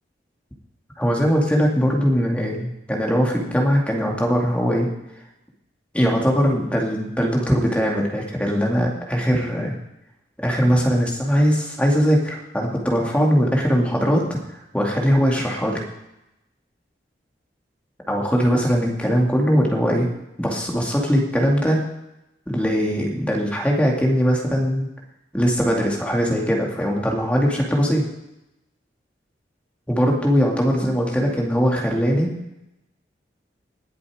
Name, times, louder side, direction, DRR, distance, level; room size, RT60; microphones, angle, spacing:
voice 1, 1.0-4.9 5.9-9.8 10.4-14.2 14.7-15.8 18.1-20.1 20.4-21.8 22.5-24.9 25.3-28.0 29.9-32.3, equal, 5° left, -1 dB, 2.3 m, -20 dB
20.5 x 7.6 x 4.9 m, 0.88 s
head